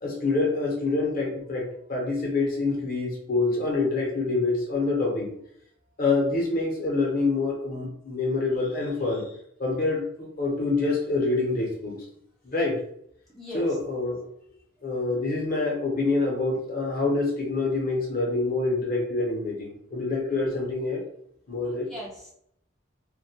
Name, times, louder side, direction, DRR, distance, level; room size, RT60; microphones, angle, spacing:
voice 1, 0.0-5.3 6.0-9.3 9.6-12.0 12.4-12.8 13.5-14.2 14.8-21.0 21.5-21.9, left 3 dB, 45° left, -1 dB, 0.7 m, -26 dB
voice 2, 13.3-13.8 21.6-22.3, equal, ahead, -6 dB, 0.3 m, -40 dB
2.2 x 2.1 x 2.7 m, 0.69 s
head